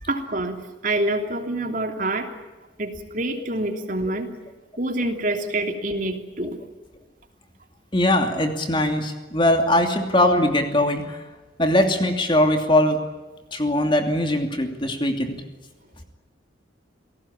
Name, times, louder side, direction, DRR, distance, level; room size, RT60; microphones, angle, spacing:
voice 1, 0.0-2.3 2.8-4.3 4.8-6.6, right 1 dB, 45° right, 5 dB, 3.0 m, -26 dB
voice 2, 7.9-11.2 11.6-13.0 13.5-15.4, left 1 dB, 25° left, 5 dB, 2.7 m, -21 dB
28.0 x 18.5 x 8.7 m, 1.2 s
head